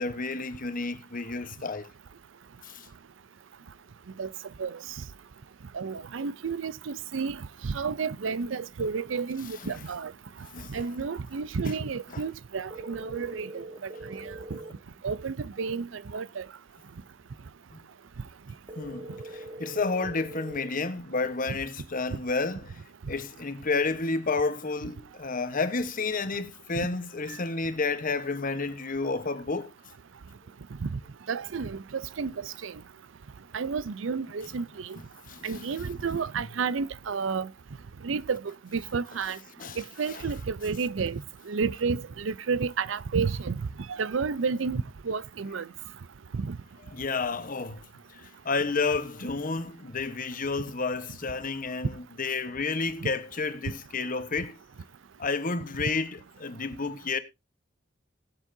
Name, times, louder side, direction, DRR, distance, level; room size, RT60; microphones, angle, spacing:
voice 1, 0.0-1.9 2.6-2.9 9.6-9.7 10.5-10.8 17.7-17.8 18.8-22.8 23.1-29.7 35.3-35.9 39.6-39.8 40.0-40.2 46.9-47.8 48.1-54.6 55.2-57.2, left 4 dB, 45° left, 1.1 m, -31 dB
voice 2, 5.7-7.4 7.6-10.1 10.7-14.3 15.0-16.4 26.8-26.9 30.8-30.9 31.3-32.7 33.5-35.0 35.4-37.5 38.0-39.4 39.8-41.2 41.5-43.6 44.0-45.7 46.3-46.6, right 5 dB, 80° right, 0.5 m, -31 dB
sound 1, 12.7-14.7 18.7-20.7, right 1 dB, 25° right, 1.3 m, -42 dB
19.5 x 7.4 x 2.7 m
head